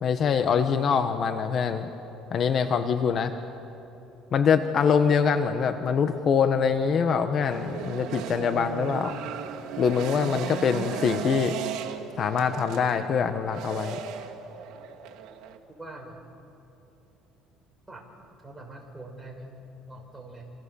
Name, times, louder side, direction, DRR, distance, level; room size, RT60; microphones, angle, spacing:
voice 1, 0.0-1.9 2.3-3.3 4.3-9.2 9.8-11.6 12.2-14.0, left 6 dB, 45° left, 8 dB, 1.4 m, -24 dB
sound 1, 7.5-15.6, right 8 dB, 70° right, 2.3 m, -36 dB
voice 2, 15.8-16.2 17.9-18.0 18.4-19.5 19.8-20.5, right 2 dB, 10° right, 1 dB, 5.9 m, -43 dB
28.0 x 27.0 x 7.2 m, 2.9 s
cardioid pair, 110°, 0 cm